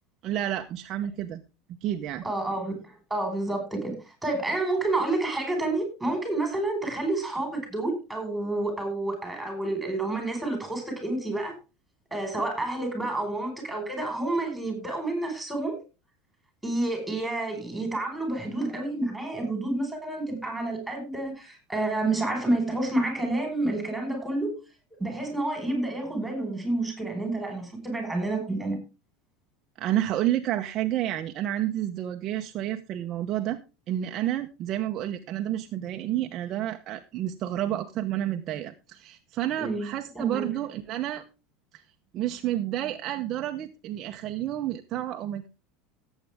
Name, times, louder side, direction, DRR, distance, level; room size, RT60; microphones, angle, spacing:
voice 1, 0.2-1.4 1.8-2.2 29.8-33.6 33.9-41.2 42.1-45.5, right 12 dB, 40° right, 5 dB, 0.8 m, -30 dB
voice 2, 2.2-3.9 4.2-11.6 12.1-15.8 16.6-24.6 25.0-28.8 39.6-40.5, right 2 dB, 5° right, 5 dB, 4.9 m, -29 dB
17.0 x 8.3 x 3.5 m, 0.30 s
supercardioid pair, 150°, 0 cm